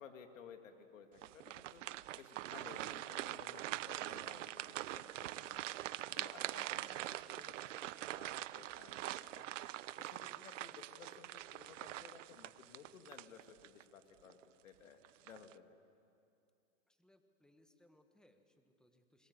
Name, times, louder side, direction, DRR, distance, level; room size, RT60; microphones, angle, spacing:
voice 1, 0.0-15.6, left 7 dB, 75° left, 6 dB, 2.4 m, -58 dB
sound 1, 1.2-13.8 14.3-14.4 15.0-15.5, right 14 dB, 70° right, 0.7 m, -44 dB
voice 2, 16.9-19.3, left 1 dB, ahead, 7 dB, 1.7 m, -69 dB
27.0 x 22.5 x 8.1 m, 2.6 s
hypercardioid pair, 115°, 39 cm